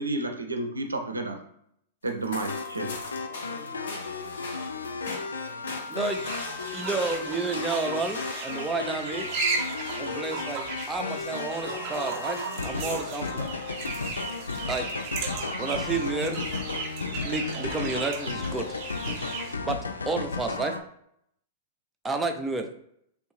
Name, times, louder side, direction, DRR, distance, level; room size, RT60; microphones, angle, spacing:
voice 1, 0.0-1.4 2.0-3.0, right 2 dB, 85° right, 4 dB, 0.4 m, -31 dB
sound 1, 2.1-8.7, left 2 dB, 60° left, 0.9 m, -40 dB
sound 2, 2.4-20.8, left 4 dB, 80° left, 0.3 m, -34 dB
voice 2, 3.3-5.9 6.7-6.9, left 3 dB, 35° left, -2 dB, 0.9 m, -48 dB
voice 3, 5.9-6.2 6.7-9.3 10.0-13.4 14.7-14.9 15.6-16.4 17.2-18.7 19.6-19.8 20.1-20.8 22.0-22.7, right 3 dB, 10° right, 4 dB, 0.4 m, -30 dB
sound 3, 6.0-19.5, right 4 dB, 40° right, 0.7 m, -35 dB
3.2 x 2.6 x 3.1 m, 0.73 s
figure-of-eight pair, 105°, 0 cm